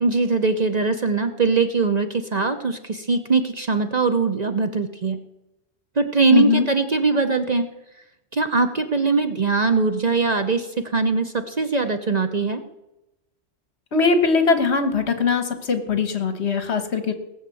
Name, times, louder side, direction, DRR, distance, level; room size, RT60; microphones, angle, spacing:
voice 1, 0.0-5.2 6.0-7.7 8.3-12.6, right 4 dB, 40° right, 8 dB, 0.8 m, -21 dB
voice 2, 6.3-6.7 13.9-17.1, left 5 dB, 65° left, 9 dB, 1.5 m, -21 dB
17.5 x 6.4 x 7.6 m, 0.94 s
omnidirectional pair, 1.2 m